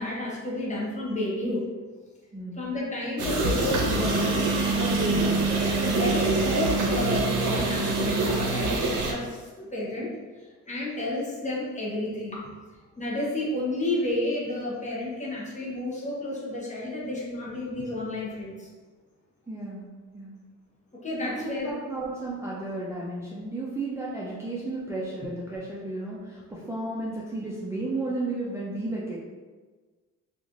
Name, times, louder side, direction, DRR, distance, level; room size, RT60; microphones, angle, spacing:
voice 1, 0.0-1.7 2.6-5.4 5.8-10.1 10.7-12.5 13.0-18.7 21.0-21.7, left 1 dB, 25° left, -5 dB, 0.9 m, -31 dB
sound 1, 3.2-9.1, right 3 dB, 80° right, 0.6 m, -25 dB
voice 2, 19.5-20.4 21.3-29.2, right 2 dB, 10° right, -7 dB, 0.4 m, -33 dB
2.9 x 2.5 x 2.5 m, 1.4 s
cardioid pair, 90°, 30 cm